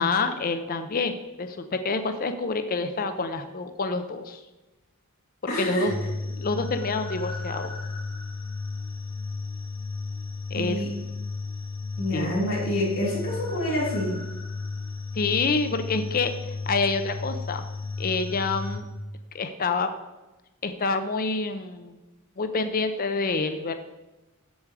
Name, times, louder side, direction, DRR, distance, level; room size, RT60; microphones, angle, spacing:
voice 1, 0.0-4.4 5.4-5.9 6.3-7.7 10.5-10.8 12.1-12.3 15.2-16.3 16.7-17.6 18.0-18.8 19.3-19.9 20.6-22.0 22.4-23.8, left 4 dB, 40° left, 8 dB, 0.6 m, -27 dB
voice 2, 5.5-5.9 10.5-10.9 12.0-14.1, equal, 60° left, -6 dB, 3.0 m, -27 dB
sound 1, 5.9-18.8, left 3 dB, 90° left, 1.5 m, -34 dB
7.9 x 7.1 x 4.8 m, 1.1 s
head